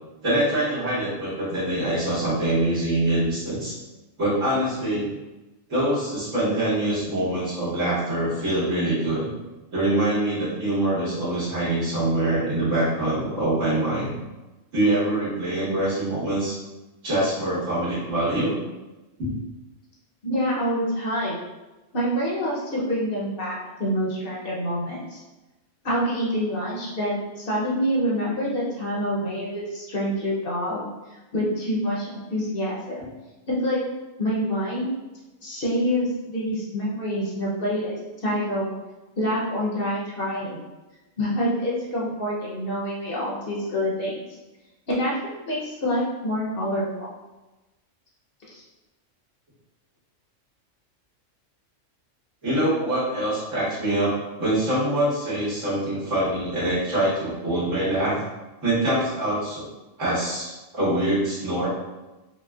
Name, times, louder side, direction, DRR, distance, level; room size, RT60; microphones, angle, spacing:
voice 1, 0.2-3.7 4.2-5.1 5.7-9.3 9.7-14.2 14.7-16.6 17.0-18.5 19.2-19.3 52.4-58.2 58.6-59.6 60.0-61.7, right 1 dB, 80° right, -9 dB, 1.9 m, -24 dB
voice 2, 20.2-21.4 21.9-25.2 25.8-30.9 31.1-33.0 33.5-33.8 34.2-34.9 35.4-38.0 38.2-38.7 39.2-40.6 41.2-44.3 44.9-47.1 48.5-48.6, equal, 50° left, -5 dB, 0.9 m, -26 dB
4.9 x 2.1 x 2.3 m, 1.1 s
omnidirectional pair, 1.3 m